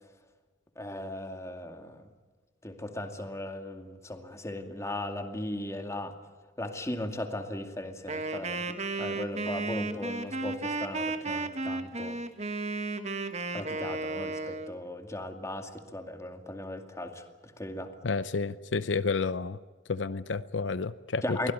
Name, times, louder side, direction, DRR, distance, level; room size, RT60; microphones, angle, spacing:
voice 1, 0.8-2.1 2.6-6.1 6.6-12.2 13.5-17.2 17.6-17.9 21.2-21.5, left 1 dB, 15° left, 5 dB, 2.3 m, -37 dB
Wind instrument woodwind instrument, 8.1-14.7, right 3 dB, 40° right, 1.6 m, -34 dB
voice 2, 18.0-19.6 19.9-21.5, left 4 dB, 80° left, 14 dB, 0.7 m, -30 dB
23.5 x 17.0 x 9.4 m, 1.4 s
head